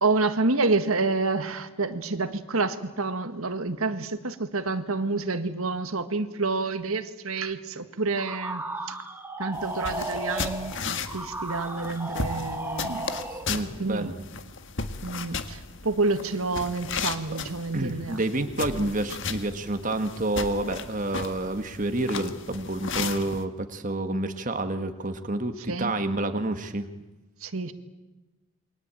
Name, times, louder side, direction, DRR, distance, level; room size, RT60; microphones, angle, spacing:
voice 1, 0.0-9.0 9.4-13.0 13.8-14.1 15.0-18.2 25.7-25.9 27.4-27.7, right 3 dB, 70° right, 9 dB, 1.7 m, -28 dB
sound 1, 8.2-13.6, right 2 dB, 10° right, 2.0 m, -35 dB
sound 2, 9.5-23.4, left 4 dB, 55° left, 1.8 m, -35 dB
voice 2, 13.5-14.2 17.7-26.9, right 2 dB, 35° right, 7 dB, 1.6 m, -29 dB
28.5 x 23.0 x 9.0 m, 1.1 s
head